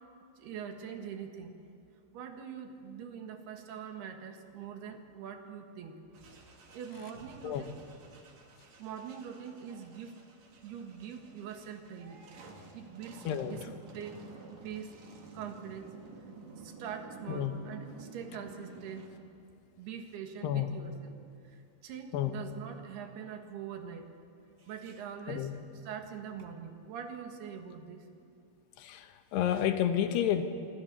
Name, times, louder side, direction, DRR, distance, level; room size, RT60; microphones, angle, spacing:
voice 1, 0.4-1.6 2.1-6.0 6.7-7.8 8.8-10.1 10.6-12.2 12.7-14.2 14.6-14.9 15.3-15.9 16.6-19.1 19.8-21.2 21.4-24.1 24.6-25.5 25.8-28.4, right 7 dB, 75° right, 5 dB, 3.7 m, -43 dB
sound 1, 6.1-19.1, right 4 dB, 45° right, 3.2 m, -52 dB
voice 2, 13.2-13.7 17.3-17.6 20.4-20.7 22.1-22.3 25.3-25.5 28.8-30.4, left 10 dB, 85° left, 8 dB, 3.4 m, -30 dB
26.5 x 24.0 x 6.9 m, 2.5 s
omnidirectional pair, 4.7 m